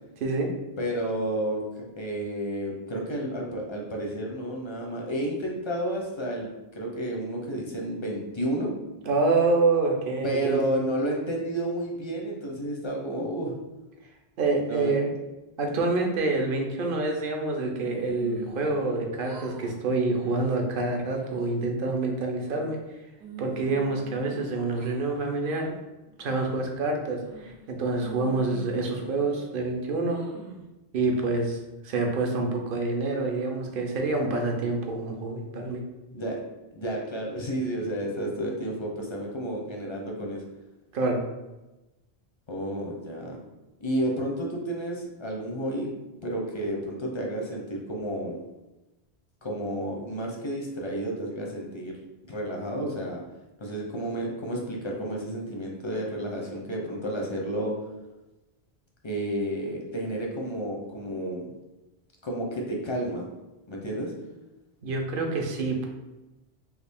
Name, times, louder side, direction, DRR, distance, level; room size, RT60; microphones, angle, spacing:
voice 1, 0.8-8.7 10.2-13.5 14.6-15.0 36.1-36.4 36.7-40.4 42.5-43.4 43.8-45.9 46.2-48.4 49.4-51.9 52.3-53.2 53.6-57.7 59.0-61.4 62.2-63.3 63.7-64.1, right 1 dB, 40° left, -1 dB, 0.4 m, -31 dB
voice 2, 9.0-10.6 14.4-15.1 15.6-22.8 23.4-25.7 26.2-30.2 30.9-31.6 31.8-35.8 40.9-41.2 64.8-65.9, right 3 dB, 60° right, 2 dB, 0.7 m, -27 dB
sound 1, 17.8-18.9 19.2-19.7 20.1-20.5 21.0-21.5 22.1-22.8 23.2-24.9 25.4-25.6 26.2-26.6 27.2-27.7 28.0-29.6 30.1-30.7, right 3 dB, 85° right, 0.9 m, -44 dB
3.1 x 2.4 x 3.4 m, 1.0 s
omnidirectional pair, 1.1 m